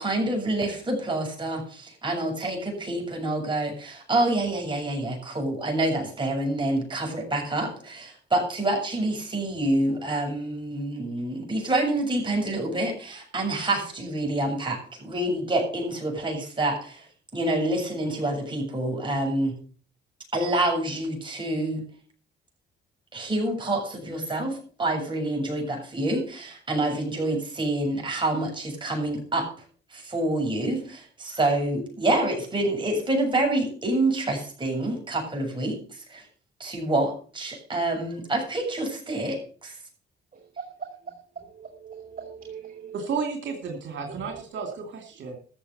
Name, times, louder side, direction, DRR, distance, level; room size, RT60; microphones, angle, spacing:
voice 1, 0.0-17.1 17.3-19.5 20.3-21.8 23.1-29.5 29.9-35.8 36.1-36.2 36.6-39.7, right 1 dB, 25° right, 1 dB, 7.3 m, -27 dB
voice 2, 40.6-43.0 44.1-44.4, right 6 dB, 45° right, 3 dB, 2.5 m, -41 dB
voice 3, 42.9-45.4, right 5 dB, 65° right, 3 dB, 2.9 m, -32 dB
14.0 x 7.4 x 6.8 m, 0.44 s
cardioid pair, 90°, 20 cm